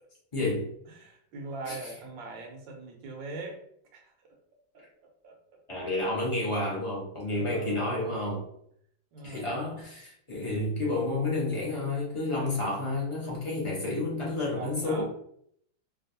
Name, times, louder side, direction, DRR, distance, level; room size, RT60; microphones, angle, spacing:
voice 1, 0.3-0.7 1.7-1.9 5.7-8.4 9.2-15.0, left 2 dB, 30° left, -5 dB, 0.6 m, -30 dB
voice 2, 0.9-3.6 3.9-4.4 4.7-5.3 7.3-8.1 9.1-9.6 14.5-15.0, right 3 dB, 80° right, 2 dB, 1.4 m, -41 dB
3.4 x 2.3 x 2.7 m, 0.70 s
omnidirectional pair, 2.0 m